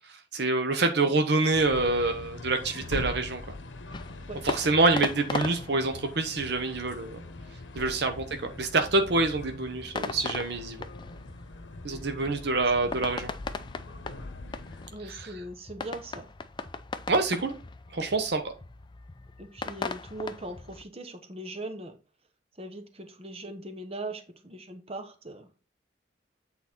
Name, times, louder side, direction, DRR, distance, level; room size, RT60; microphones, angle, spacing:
voice 1, 0.1-3.4 4.4-7.2 7.8-10.8 11.8-13.3 17.1-17.6 17.9-18.4, right 3 dB, 60° right, 0.8 m, -26 dB
sound 1, 1.5-14.9, left 2 dB, 80° left, 0.9 m, -42 dB
sound 2, 2.3-20.8, left 3 dB, 25° left, 0.4 m, -40 dB
voice 2, 12.8-13.1 14.9-16.3 18.0-18.1 19.4-22.0 22.6-25.5, right 2 dB, 35° right, 1.1 m, -40 dB
8.3 x 4.0 x 4.4 m
head